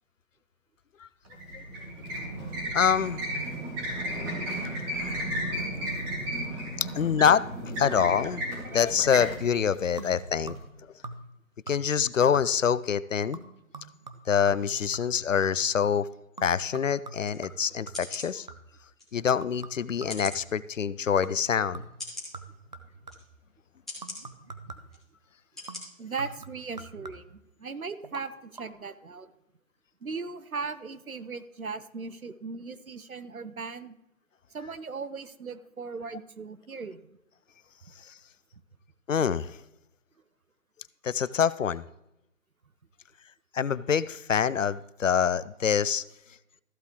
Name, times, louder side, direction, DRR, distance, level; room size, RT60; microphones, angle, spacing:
sound 1, 1.3-10.6, right 1 dB, 15° right, 2.1 m, -34 dB
voice 1, 2.7-3.2 4.9-5.9 6.8-7.4 7.8-10.5 11.7-13.4 14.3-16.1 16.4-18.5 19.1-21.8 39.1-39.5 41.0-41.8 43.5-46.0, left 7 dB, 65° left, 18 dB, 0.6 m, -26 dB
sound 2, 10.0-10.8 11.0-11.4 11.7-12.0 12.3-12.8 13.3-15.8 16.4-18.8 19.4-20.7 21.2-21.5 21.7-23.4 24.0-25.0 25.7-27.4 28.0-28.3 28.5-28.6, right 3 dB, 30° right, 0.6 m, -45 dB
sound 3, 17.2-17.4 17.9-18.3 19.0-19.1 20.1-20.4 21.1-21.2 22.0-22.3 23.1-23.2 23.9-24.2 24.9-25.0 25.6-25.8 26.2-26.3, left 2 dB, ahead, 1.2 m, -39 dB
voice 2, 26.0-29.3 30.0-34.0 34.5-37.2, right 4 dB, 85° right, 13 dB, 0.9 m, -38 dB
14.5 x 8.1 x 3.0 m, 0.85 s
figure-of-eight pair, 150°, 41 cm